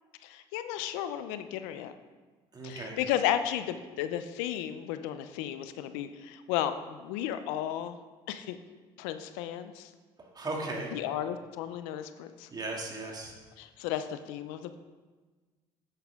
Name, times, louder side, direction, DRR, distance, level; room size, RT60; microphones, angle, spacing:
voice 1, 0.2-1.9 2.6-8.0 8.3-8.6 9.0-9.9 10.9-12.5 13.6-14.8, left 11 dB, 85° left, 10 dB, 0.6 m, -34 dB
voice 2, 2.5-3.0 10.3-10.9 12.5-13.3, right 2 dB, 35° right, -1 dB, 2.5 m, -36 dB
10.0 x 8.3 x 3.6 m, 1.3 s
supercardioid pair, 70°, 12 cm